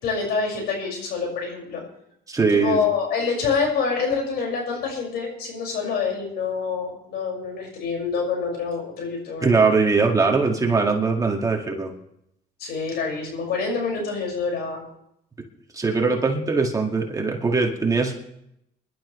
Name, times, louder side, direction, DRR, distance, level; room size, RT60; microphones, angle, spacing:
voice 1, 0.0-1.8 2.5-9.5 9.9-10.0 12.6-14.8, left 5 dB, 70° left, 0 dB, 5.8 m, -26 dB
voice 2, 2.3-2.8 9.4-11.9 15.7-18.1, right 4 dB, 20° right, 1 dB, 2.0 m, -21 dB
24.0 x 12.0 x 3.2 m, 0.76 s
cardioid pair, 110°, 17 cm